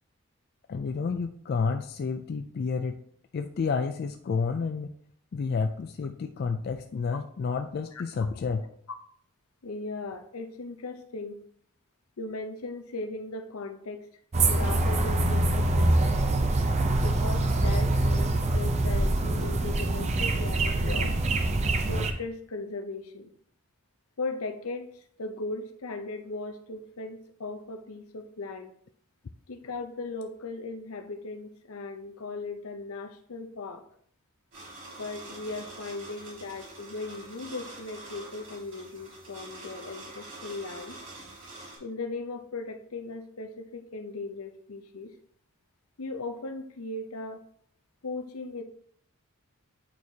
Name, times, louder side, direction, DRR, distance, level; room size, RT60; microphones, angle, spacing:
voice 1, 0.7-3.0 3.3-4.9 5.3-8.7, left 5 dB, 45° left, 6 dB, 0.3 m, -30 dB
voice 2, 9.6-11.4 12.2-14.0 14.5-16.2 17.0-21.2 21.9-23.3 24.2-28.7 29.5-33.8 35.0-41.0 41.8-45.1 46.0-47.4 48.0-48.6, left 3 dB, 75° left, 8 dB, 0.7 m, -38 dB
sound 1, 14.3-22.1, right 2 dB, 30° right, 0.5 m, -24 dB
sound 2, 34.5-41.8, right 2 dB, 60° right, 2.8 m, -45 dB
8.4 x 4.6 x 2.7 m, 0.63 s
head